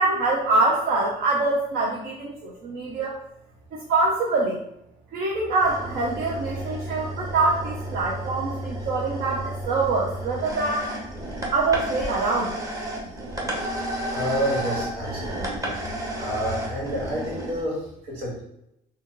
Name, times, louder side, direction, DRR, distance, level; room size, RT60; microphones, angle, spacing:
voice 1, 0.0-3.2 3.9-4.6 5.1-10.9 11.5-12.5, right 3 dB, 65° right, -3 dB, 0.6 m, -24 dB
sound 1, 5.6-17.6, right 1 dB, 20° right, 0.8 m, -32 dB
voice 2, 14.1-15.8 16.2-18.4, equal, 90° right, -4 dB, 1.3 m, -29 dB
2.9 x 2.3 x 3.7 m, 0.81 s
cardioid pair, 110°, 17 cm